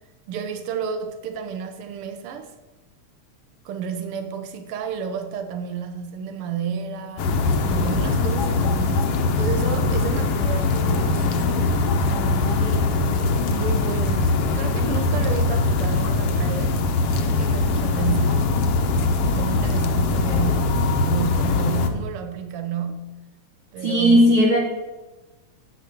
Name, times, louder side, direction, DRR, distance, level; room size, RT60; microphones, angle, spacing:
voice 1, 0.3-2.5 3.6-7.3 7.7-12.9 13.5-18.5 19.2-23.1 23.7-24.2, right 7 dB, 75° right, 1.3 m, -31 dB
sound 1, 7.2-21.9, left 3 dB, 65° left, 1.6 m, -21 dB
voice 2, 23.8-24.6, equal, 55° right, 1.7 m, -16 dB
9.5 x 6.7 x 6.8 m
omnidirectional pair, 3.6 m